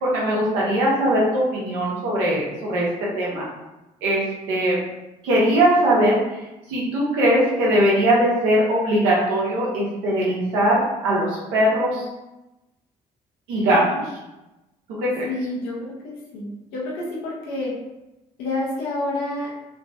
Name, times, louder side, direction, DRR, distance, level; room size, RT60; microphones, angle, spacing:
voice 1, 0.0-3.4 4.0-4.8 5.2-6.2 6.7-12.0 13.5-13.8 15.0-15.3, right 1 dB, 85° right, -5 dB, 0.9 m, -20 dB
voice 2, 13.7-14.1 15.2-17.7 18.4-19.5, left 2 dB, 85° left, -4 dB, 0.7 m, -29 dB
2.9 x 2.7 x 2.4 m, 0.99 s
hypercardioid pair, 55°, 17 cm